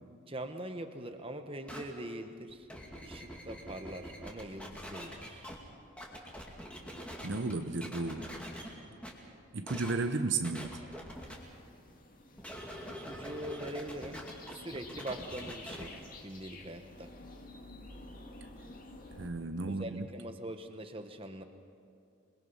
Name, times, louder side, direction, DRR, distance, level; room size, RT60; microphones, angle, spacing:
voice 1, 0.3-2.7 3.0-5.5 12.8-17.1 19.6-21.4, right 1 dB, 25° right, 6 dB, 1.2 m, -43 dB
sound 1, 1.7-1.8 2.5-5.6 6.0-7.5 7.8-8.7 9.0-9.1 9.7-9.9 10.4-11.3 12.4-15.9, equal, 5° left, 2.5 m, -44 dB
voice 2, 7.2-8.3 9.5-10.7 19.2-20.0, right 3 dB, 60° right, 8 dB, 0.8 m, -33 dB
sound 2, 11.1-19.3, left 2 dB, 40° left, 2.1 m, -51 dB
27.5 x 21.5 x 5.6 m, 2.4 s
head